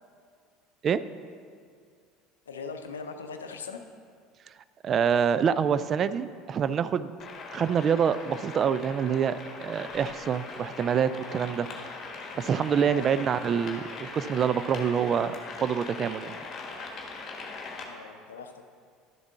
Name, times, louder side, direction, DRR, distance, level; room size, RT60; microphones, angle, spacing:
voice 1, 2.5-3.8 11.6-11.7 12.9-13.2 17.8-18.6, left 5 dB, 75° left, 6 dB, 0.6 m, -40 dB
voice 2, 4.8-7.2 7.5-11.7 12.4-15.3 15.6-16.3, right 7 dB, 35° right, 14 dB, 0.3 m, -26 dB
sound 1, 7.2-17.8, left 4 dB, 35° left, 1.4 m, -40 dB
11.5 x 7.2 x 3.6 m, 2.2 s
figure-of-eight pair, 65°, 0 cm